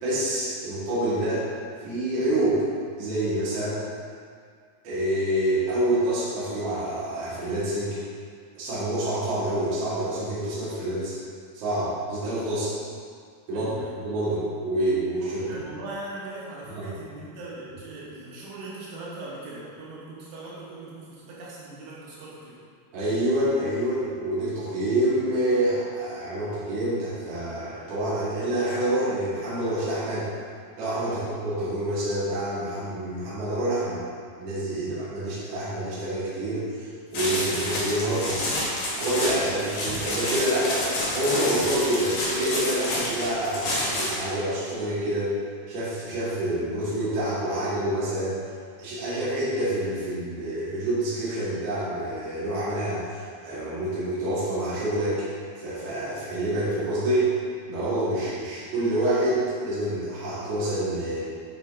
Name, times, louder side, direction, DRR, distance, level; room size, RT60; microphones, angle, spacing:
voice 1, 0.0-1.4 1.8-2.7 3.0-3.8 4.8-8.0 8.5-11.2 11.5-12.7 13.5-15.6 16.6-16.9 22.9-30.3 30.8-34.0 34.4-38.4 39.0-45.3 45.7-48.4 48.8-55.2 55.6-57.3 57.7-61.2, right 1 dB, 45° right, -10 dB, 2.6 m, -27 dB
voice 2, 13.5-14.0 15.2-22.6 31.1-31.3 34.7-35.0, right 2 dB, 80° right, -7 dB, 3.5 m, -40 dB
sound 1, 37.1-44.3, left 1 dB, 60° left, 1.9 m, -29 dB
9.1 x 5.1 x 3.8 m, 2.1 s
omnidirectional pair, 4.8 m